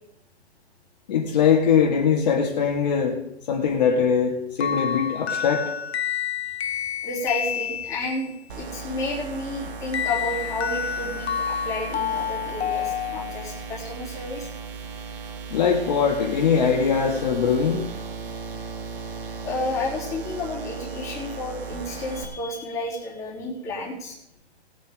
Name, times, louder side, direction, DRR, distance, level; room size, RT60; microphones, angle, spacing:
voice 1, 1.1-3.2 3.5-5.7 15.5-17.8, left 6 dB, 40° left, 0 dB, 2.1 m, -21 dB
sound 1, 4.6-8.3 9.9-13.7, left 8 dB, 70° left, 0.9 m, -29 dB
voice 2, 7.0-14.5 19.4-24.2, left 2 dB, 10° left, -6 dB, 3.4 m, -31 dB
sound 2, 8.5-22.2, right 5 dB, 50° right, 2.5 m, -36 dB
20.0 x 8.6 x 3.7 m, 0.82 s
hypercardioid pair, 165°, 33 cm